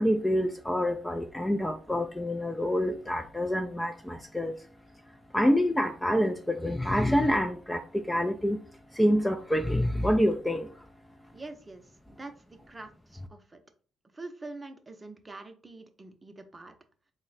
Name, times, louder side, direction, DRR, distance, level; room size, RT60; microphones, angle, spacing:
voice 1, 0.0-4.7 5.3-8.6 8.9-10.8, equal, 10° left, 0.3 m, -27 dB
voice 2, 11.3-13.6 14.1-16.7, right 2 dB, 20° right, 0.7 m, -45 dB
3.8 x 2.1 x 3.9 m
cardioid pair, 90°, 0 cm